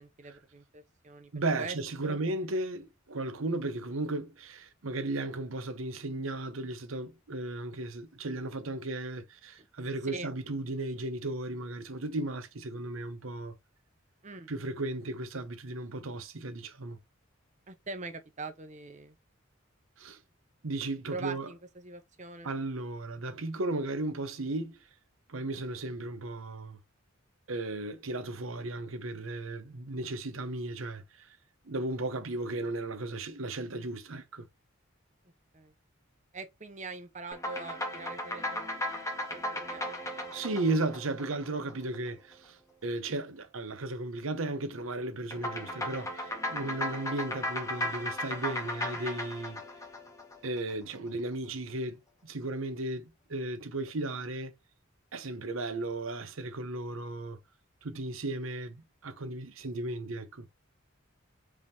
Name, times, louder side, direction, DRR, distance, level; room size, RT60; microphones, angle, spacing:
voice 1, 0.0-1.3 1.6-1.8 2.0-2.2 10.1-10.3 14.2-14.5 17.7-19.2 21.1-22.5 25.6-25.7 35.5-35.7 36.3-40.2, right 3 dB, 35° right, 0.9 m, -43 dB
voice 2, 1.3-13.5 14.5-17.0 20.0-20.2 20.6-21.5 22.4-24.8 25.3-26.8 27.5-31.3 31.6-34.5 40.3-49.6 50.4-54.5 55.1-57.4 57.8-60.5, right 2 dB, 80° right, 0.9 m, -35 dB
sound 1, 37.3-42.0 45.3-50.7, left 1 dB, 15° left, 1.2 m, -36 dB
4.7 x 3.6 x 2.7 m
head